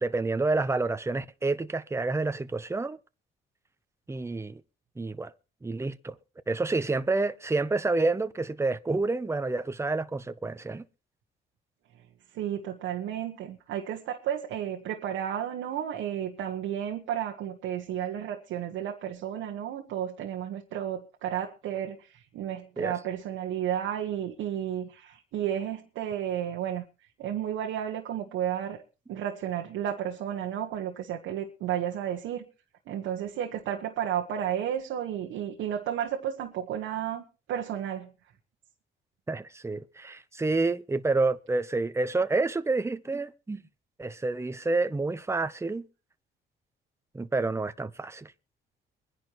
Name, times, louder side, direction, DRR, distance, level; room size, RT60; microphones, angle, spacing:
voice 1, 0.0-3.0 4.1-4.6 5.0-5.3 5.6-6.1 6.5-10.8 22.8-22.9 39.3-43.6 44.0-45.9 47.1-48.3, right 3 dB, 15° right, 0.8 m, -28 dB
voice 2, 12.3-26.8 27.2-28.8 29.1-32.5 32.9-38.1, right 10 dB, 85° right, 1.5 m, -32 dB
24.0 x 10.5 x 3.1 m
cardioid pair, 90°, 20 cm